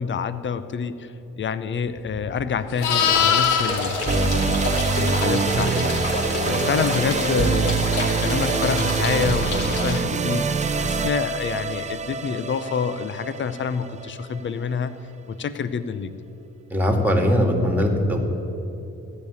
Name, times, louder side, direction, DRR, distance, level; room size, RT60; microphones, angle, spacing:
voice 1, 0.0-4.6 5.0-6.0 6.4-15.0 15.3-16.1, left 6 dB, 40° left, 12 dB, 0.7 m, -27 dB
Livestock farm animals working animals, 2.1-5.4 9.7-10.0, left 8 dB, 80° left, 0.9 m, -24 dB
sound 1, 2.8-10.0, left 2 dB, 55° left, 2.5 m, -29 dB
sound 2, 4.1-14.4, right 5 dB, 25° right, 0.5 m, -25 dB
voice 2, 16.7-18.3, equal, 5° right, 2 dB, 2.0 m, -20 dB
14.5 x 5.3 x 9.6 m, 2.8 s
cardioid pair, 90°, 30 cm